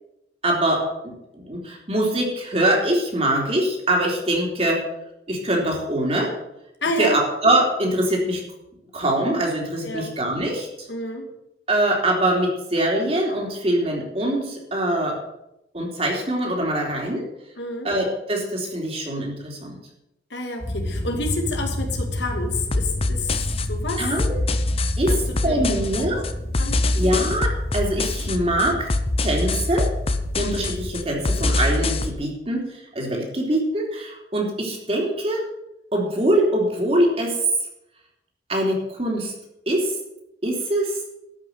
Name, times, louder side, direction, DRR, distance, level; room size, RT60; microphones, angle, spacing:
voice 1, 0.4-4.8 5.3-6.3 7.0-8.4 8.9-10.7 11.7-15.1 15.7-17.2 17.8-19.8 24.0-24.4 25.0-25.1 25.4-26.2 26.9-28.9 29.2-29.9 30.4-32.6 32.9-35.4 35.9-37.4 38.5-39.3 39.7-39.9 40.4-41.0, right 1 dB, 35° right, -1 dB, 3.2 m, -23 dB
voice 2, 6.8-7.2 9.8-10.1 10.9-11.3 17.6-17.9 20.3-23.3 23.7-24.1 25.1-26.1 26.6-27.0, left 2 dB, 85° left, 2 dB, 2.4 m, -29 dB
sound 1, 20.6-31.0, left 1 dB, 20° left, 2.5 m, -30 dB
sound 2, 22.7-32.1, left 2 dB, 35° left, 0.7 m, -25 dB
12.5 x 6.1 x 8.1 m, 0.88 s
head